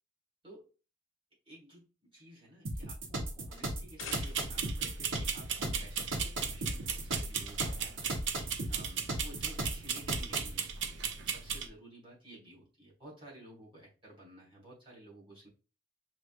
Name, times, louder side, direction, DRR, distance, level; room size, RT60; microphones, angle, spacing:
voice 1, 1.5-8.1 8.7-15.5, right 1 dB, 25° right, -6 dB, 2.6 m, -54 dB
sound 1, 2.6-10.6, right 1 dB, 80° right, 1.1 m, -37 dB
sound 2, 3.7-4.8, left 7 dB, 85° left, 0.6 m, -47 dB
sound 3, 4.1-11.7, right 7 dB, 65° right, 0.6 m, -37 dB
5.9 x 3.1 x 2.5 m, 0.33 s
head